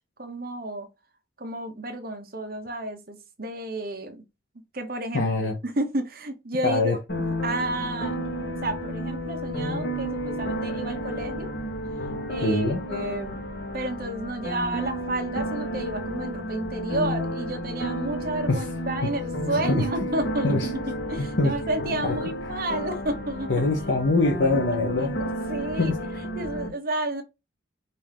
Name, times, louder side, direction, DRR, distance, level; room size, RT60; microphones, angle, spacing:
voice 1, 0.2-0.9 1.4-4.2 4.7-7.0 7.4-11.6 12.3-13.4 13.7-20.8 21.1-23.5 23.9-24.0 25.0-25.9 26.3-27.2, right 1 dB, 50° right, 1.0 m, -31 dB
voice 2, 5.1-5.6 6.6-7.0 12.4-12.8 18.5-18.7 19.5-19.9 20.4-20.7 21.2-21.5 22.0-22.1 22.4-22.5 23.5-25.2 25.8-26.0, left 2 dB, 75° left, 0.9 m, -23 dB
sound 1, 7.1-26.7, equal, 60° left, 1.1 m, -32 dB
5.4 x 2.7 x 3.4 m
head